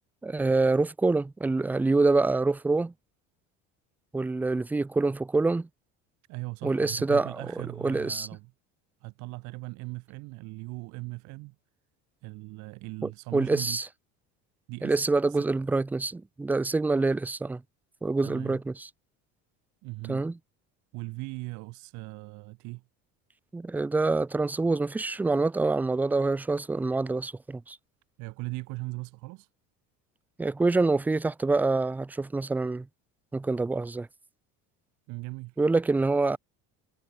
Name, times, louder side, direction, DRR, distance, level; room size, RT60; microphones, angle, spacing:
voice 1, 0.2-2.9 4.1-5.7 6.6-7.3 7.8-8.3 13.3-13.9 14.8-17.6 18.0-18.9 20.1-20.3 23.5-27.8 30.4-32.9 33.3-34.1 35.6-36.4, right 3 dB, 5° right, 0.4 m, -26 dB
voice 2, 6.3-8.5 9.0-11.6 12.2-13.8 14.7-15.0 15.3-15.4 18.2-18.6 19.8-20.2 20.9-22.8 28.2-29.5 35.1-35.6, right 25 dB, 65° right, 2.8 m, -39 dB
cardioid pair, 150°, 31 cm